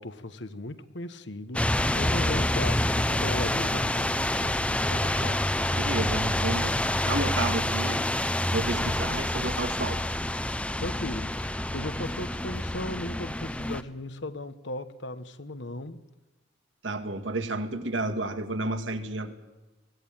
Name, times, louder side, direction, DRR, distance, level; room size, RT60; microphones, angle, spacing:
voice 1, 0.0-5.4 8.5-9.0 10.8-16.0, left 2 dB, 70° left, 1.3 m, -37 dB
sound 1, 1.5-13.8, left 1 dB, 5° left, 0.7 m, -27 dB
voice 2, 5.8-8.0 8.5-10.0 16.8-19.3, right 2 dB, 85° right, 2.1 m, -31 dB
23.0 x 17.0 x 9.1 m
head